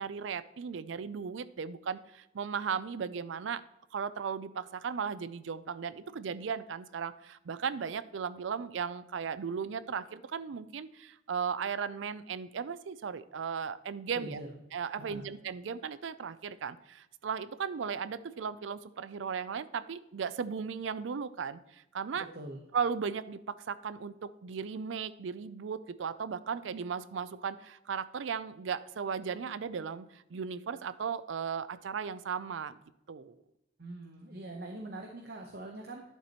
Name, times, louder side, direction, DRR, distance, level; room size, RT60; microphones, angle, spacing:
voice 1, 0.0-3.6 3.9-14.4 14.7-22.3 22.7-32.8 33.1-33.4, right 6 dB, 80° right, 16 dB, 0.4 m, -36 dB
voice 2, 14.1-14.5 15.0-15.3 22.2-22.6 33.8-36.0, right 1 dB, 55° right, 1 dB, 0.9 m, -43 dB
11.5 x 7.4 x 3.0 m, 0.90 s
head